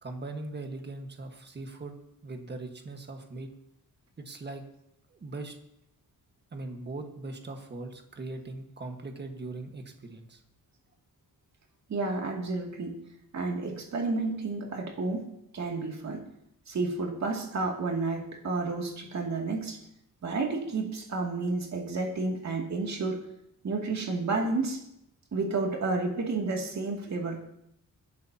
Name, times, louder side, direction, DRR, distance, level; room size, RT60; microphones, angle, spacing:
voice 1, 0.0-1.9 2.2-3.5 4.2-4.6 5.1-5.6 6.5-10.4, right 2 dB, 30° right, 4 dB, 1.5 m, -40 dB
voice 2, 11.9-13.0 13.3-16.2 16.7-19.8 20.2-23.2 23.6-24.8 25.3-27.4, right 3 dB, 50° right, 1 dB, 2.5 m, -31 dB
23.0 x 11.0 x 2.8 m, 0.76 s
wide cardioid pair, 165°, 34 cm